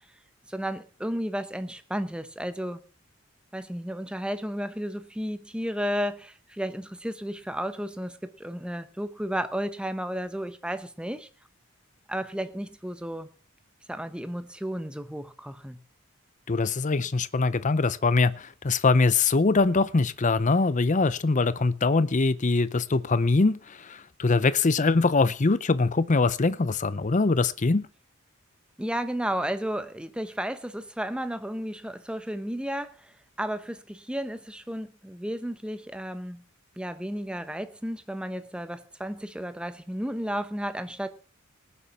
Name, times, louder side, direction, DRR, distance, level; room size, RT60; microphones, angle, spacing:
voice 1, 0.5-2.8 3.5-11.3 12.1-13.3 13.9-15.8 28.8-36.4 36.8-41.1, equal, 5° right, 0.9 m, -33 dB
voice 2, 16.5-27.9, left 3 dB, 35° left, 0.6 m, -23 dB
19.0 x 7.1 x 5.9 m
head